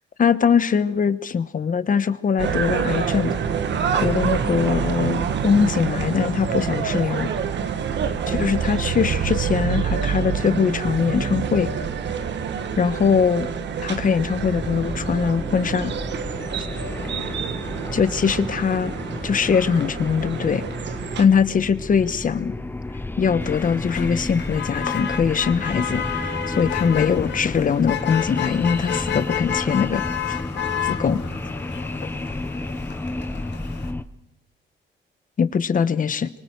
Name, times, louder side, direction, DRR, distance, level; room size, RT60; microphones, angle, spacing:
voice 1, 0.2-3.3 4.0-7.3 8.3-11.7 12.8-13.5 13.8-15.9 17.9-18.9 19.2-20.6 21.2-22.5 23.2-30.4 30.8-31.2 35.4-36.3, left 6 dB, 45° left, 13 dB, 1.2 m, -22 dB
sound 1, 2.4-21.3, right 7 dB, 65° right, 1.7 m, -27 dB
sound 2, 14.2-34.0, left 2 dB, 10° left, 0.9 m, -32 dB
Motor vehicle (road), 23.4-33.9, left 8 dB, 65° left, 2.2 m, -31 dB
28.0 x 24.5 x 4.7 m, 0.76 s
cardioid pair, 90°, 20 cm